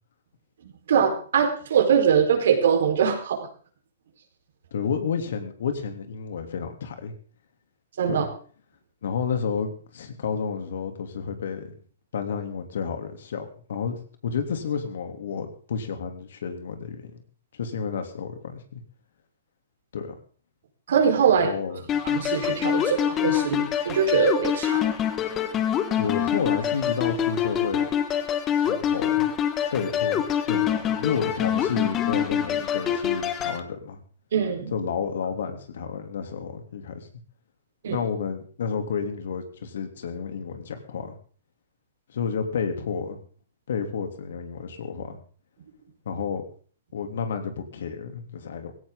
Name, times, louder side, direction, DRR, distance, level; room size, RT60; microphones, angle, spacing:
voice 1, 0.6-3.5 8.0-8.3 20.9-21.5 22.0-24.8 34.3-34.8 37.8-38.0, right 7 dB, 70° right, 3 dB, 4.5 m, -22 dB
voice 2, 4.7-7.1 8.1-8.3 9.0-11.8 12.1-17.2 17.5-18.8 19.9-20.1 21.3-21.8 26.0-27.9 28.7-29.3 29.7-34.0 34.7-37.1 37.9-41.1 42.1-43.2 43.7-45.2 46.0-46.4 46.9-48.7, left 6 dB, 70° left, 6 dB, 3.1 m, -31 dB
sound 1, 21.9-33.6, left 9 dB, 25° left, 1.5 m, -25 dB
17.0 x 16.0 x 3.9 m, 0.43 s
hypercardioid pair, 140°, 0 cm